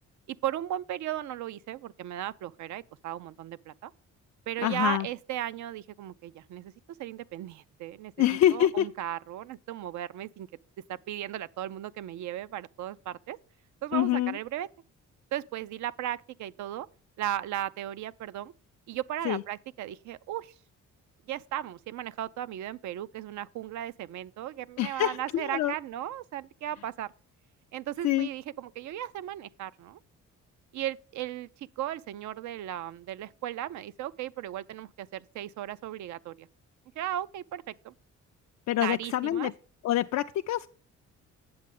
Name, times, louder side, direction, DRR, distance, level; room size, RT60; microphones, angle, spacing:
voice 1, 0.3-3.9 4.5-6.7 7.0-8.3 8.5-10.5 10.9-13.4 13.8-14.7 15.3-16.9 17.2-18.5 18.9-20.5 21.3-27.1 27.7-30.0 30.7-36.5 37.0-37.9 38.8-39.5, right 12 dB, 70° right, 0.5 m, -36 dB
voice 2, 4.6-5.1 8.2-8.9 13.9-14.4 19.2-19.4 24.8-25.7 28.0-28.3 38.7-39.5 39.8-40.7, left 13 dB, 65° left, 0.4 m, -26 dB
8.7 x 7.5 x 3.7 m
cardioid pair, 90°, 30 cm